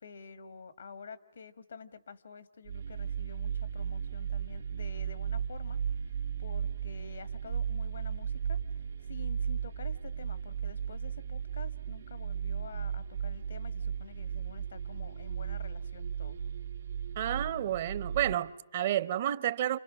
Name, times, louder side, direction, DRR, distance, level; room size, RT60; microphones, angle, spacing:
voice 1, 0.0-16.4, left 5 dB, 80° left, 1.7 m, -49 dB
sound 1, 2.7-18.4, right 8 dB, 75° right, 2.6 m, -35 dB
voice 2, 17.2-19.8, right 12 dB, 50° right, 0.9 m, -30 dB
29.0 x 28.0 x 6.2 m
hypercardioid pair, 150°, 0 cm